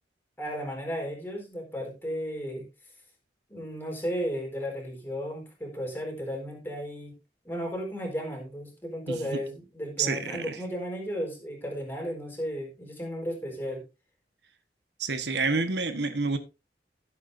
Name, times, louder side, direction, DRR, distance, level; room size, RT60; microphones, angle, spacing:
voice 1, 0.4-2.6 3.5-7.1 7.4-13.8, equal, 10° left, 4.3 m, -34 dB
voice 2, 9.1-9.4 10.0-10.6 15.0-16.4, right 4 dB, 75° right, 1.3 m, -28 dB
16.0 x 8.2 x 2.6 m
head